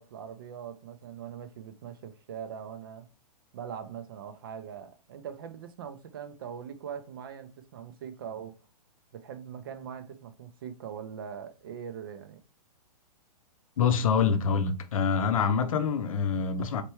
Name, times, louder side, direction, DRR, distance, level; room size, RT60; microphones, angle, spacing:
voice 1, 0.0-3.1 3.5-8.6 9.1-12.4, right 8 dB, 35° right, 0.4 m, -41 dB
voice 2, 13.8-16.8, left 6 dB, 55° left, 0.7 m, -26 dB
4.4 x 3.3 x 3.0 m
hypercardioid pair, 165°, 20 cm